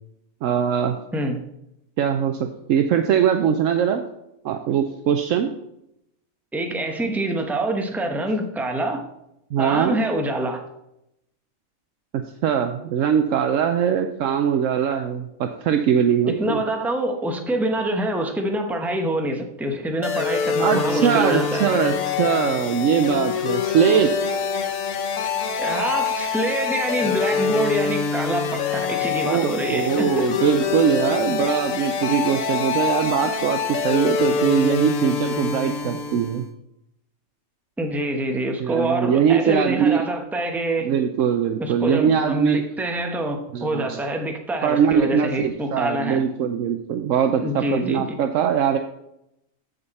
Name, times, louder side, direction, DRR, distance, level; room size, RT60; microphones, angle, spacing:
voice 1, 0.4-1.0 2.0-4.0 4.4-5.5 9.5-10.0 12.1-16.6 20.6-24.3 29.2-36.5 38.6-40.0 40.8-42.6 43.5-44.0 44.6-48.8, right 8 dB, 75° right, 7 dB, 1.0 m, -21 dB
voice 2, 6.5-9.1 9.6-10.6 16.3-21.7 25.6-30.3 37.8-40.9 41.6-46.2 47.4-48.0, right 1 dB, ahead, 3 dB, 0.9 m, -26 dB
sound 1, 20.0-36.4, left 6 dB, 80° left, 1.2 m, -25 dB
14.0 x 5.2 x 4.2 m, 0.82 s
omnidirectional pair, 1.4 m